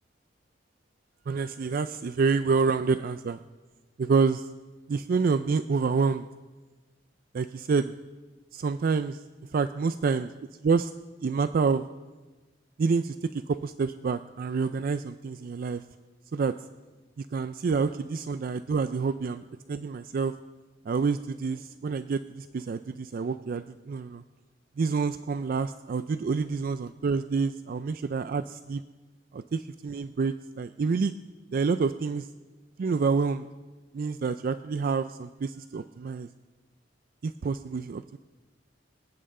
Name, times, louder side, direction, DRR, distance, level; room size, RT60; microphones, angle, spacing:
voice 1, 1.3-3.4 4.0-4.4 4.9-6.3 7.3-8.0 8.5-9.2 9.5-10.3 10.6-10.9 11.2-11.9 12.8-15.8 16.3-16.6 17.3-19.4 19.7-20.3 20.9-24.2 24.8-28.8 29.3-31.1 31.5-32.3 32.8-33.5 33.9-36.3 37.2-38.2, right 4 dB, 50° right, 11 dB, 0.4 m, -28 dB
25.5 x 8.7 x 3.7 m, 1.3 s
head